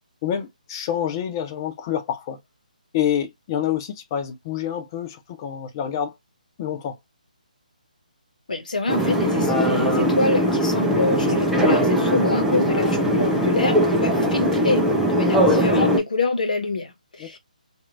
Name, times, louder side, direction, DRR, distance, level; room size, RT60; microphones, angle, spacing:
voice 1, 0.2-2.4 2.9-6.1 6.6-7.0 17.2-17.4, left 9 dB, 25° left, 0.5 m, -27 dB
voice 2, 8.5-17.4, left 3 dB, 65° left, 1.1 m, -26 dB
sound 1, 8.9-16.0, equal, 5° right, 0.7 m, -20 dB
2.9 x 2.6 x 2.4 m
figure-of-eight pair, 145°, 5 cm